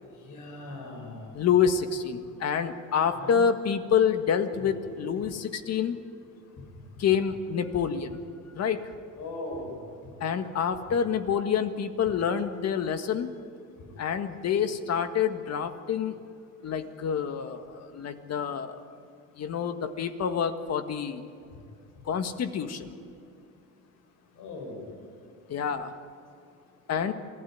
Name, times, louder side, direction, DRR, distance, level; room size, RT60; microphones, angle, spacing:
voice 1, 0.0-1.4 3.2-3.4 4.6-5.4 9.2-9.8 13.7-13.9 24.3-24.9, left 2 dB, 65° left, 2 dB, 7.0 m, -40 dB
voice 2, 1.3-6.0 7.0-8.2 8.5-8.9 10.2-13.3 14.0-16.2 16.6-18.8 19.4-21.2 22.1-23.0 25.5-25.9 26.9-27.1, left 7 dB, 50° left, 8 dB, 1.7 m, -27 dB
27.5 x 16.0 x 9.5 m, 2.5 s
cardioid pair, 120°, 34 cm